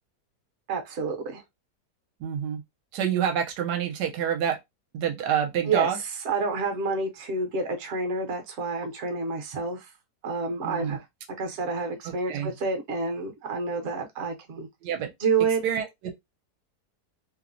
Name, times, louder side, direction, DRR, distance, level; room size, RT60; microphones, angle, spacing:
voice 1, 0.7-1.4 5.6-5.9 6.2-9.9 10.2-11.0 11.4-14.7 15.2-15.6, right 4 dB, 55° right, 0.8 m, -28 dB
voice 2, 2.2-2.6 2.9-4.6 4.9-6.0 10.6-11.0 12.0-12.5 14.8-15.1 15.6-16.1, right 8 dB, 80° right, 1.2 m, -27 dB
3.0 x 2.0 x 2.4 m
omnidirectional pair, 1.8 m